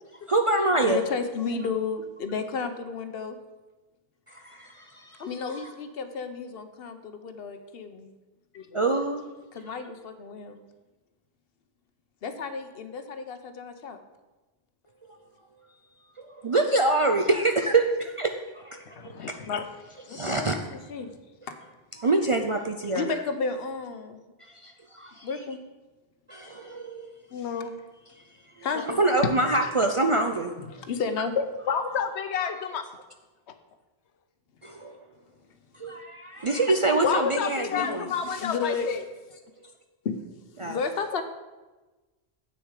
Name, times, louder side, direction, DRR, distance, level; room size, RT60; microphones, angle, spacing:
voice 1, 0.3-1.0 4.3-5.3 5.5-5.6 8.7-9.2 16.2-19.3 20.1-20.6 22.0-23.1 24.4-25.3 26.3-27.1 28.9-30.5 34.6-35.0 35.8-38.1 40.6-40.8, right 2 dB, 45° right, 5 dB, 0.4 m, -25 dB
voice 2, 0.8-3.4 5.2-8.1 9.5-10.6 12.2-14.0 20.1-21.2 22.8-24.2 25.2-25.6 27.4-27.5 28.6-28.9 30.6-31.4 37.6-38.9 40.0-40.2 40.6-41.2, left 5 dB, 65° left, 9 dB, 0.9 m, -32 dB
voice 3, 8.5-9.0 19.0-19.7 20.2-20.3 27.3-27.7 28.7-29.0 31.7-32.8 37.0-39.0, left 7 dB, 85° left, 9 dB, 1.0 m, -30 dB
8.4 x 6.5 x 4.7 m, 1.2 s
omnidirectional pair, 1.1 m